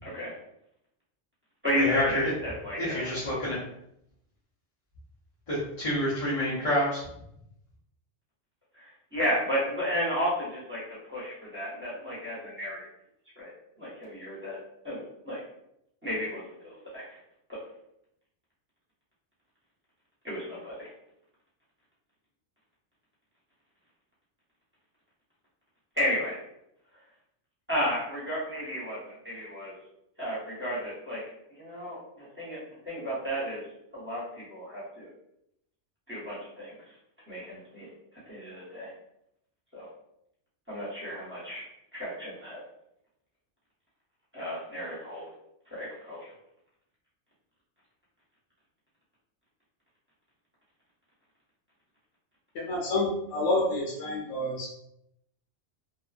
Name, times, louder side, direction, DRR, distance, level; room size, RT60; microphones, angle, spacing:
voice 1, 0.0-0.3 1.6-3.1 8.7-10.8 11.1-12.9 13.4-13.5 13.8-14.6 14.8-15.4 16.0-17.2 17.5-17.6 20.2-20.9 25.9-26.4 27.7-29.7 30.2-31.2 31.6-33.6 33.9-35.1 36.1-36.8 37.3-37.9 38.3-38.9 39.7-39.9 40.7-41.6 41.9-42.6 44.3-45.2 45.7-46.3, equal, 10° right, -9 dB, 1.1 m, -33 dB
voice 2, 1.8-2.3 2.8-3.6 5.5-7.0, left 1 dB, 35° left, -9 dB, 0.7 m, -28 dB
voice 3, 52.5-54.8, left 2 dB, 80° left, -3 dB, 1.0 m, -29 dB
2.4 x 2.3 x 2.4 m, 0.78 s
omnidirectional pair, 1.2 m